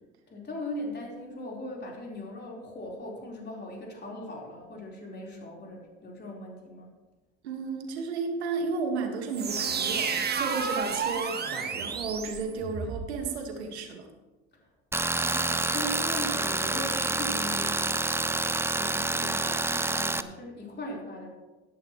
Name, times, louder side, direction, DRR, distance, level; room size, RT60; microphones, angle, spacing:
voice 1, 0.3-6.9 15.2-18.0 18.7-21.3, left 1 dB, 30° left, -2 dB, 4.4 m, -39 dB
voice 2, 7.4-14.1, right 4 dB, 85° right, 4 dB, 1.9 m, -33 dB
sound 1, 9.3-13.1, right 6 dB, 30° right, 1.5 m, -31 dB
Tools, 14.9-20.2, right 2 dB, 10° right, 0.6 m, -28 dB
17.0 x 10.5 x 3.2 m, 1.2 s
hypercardioid pair, 75°, 32 cm